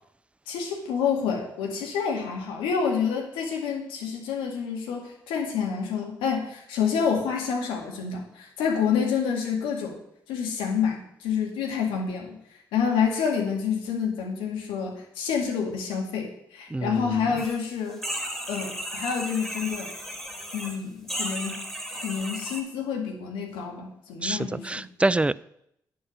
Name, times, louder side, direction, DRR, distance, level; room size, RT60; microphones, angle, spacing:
voice 1, 0.5-10.0 10.3-12.4 12.7-18.0 18.5-19.9 20.5-21.6 21.9-24.8, left 6 dB, 80° left, 1 dB, 2.1 m, -28 dB
voice 2, 16.7-17.3 24.2-25.4, right 2 dB, 15° right, 19 dB, 0.4 m, -26 dB
sound 1, 17.4-17.6 17.9-20.8 21.1-22.6, equal, 5° left, 3.0 m, -34 dB
9.3 x 7.6 x 6.3 m, 0.75 s
hypercardioid pair, 45°, 9 cm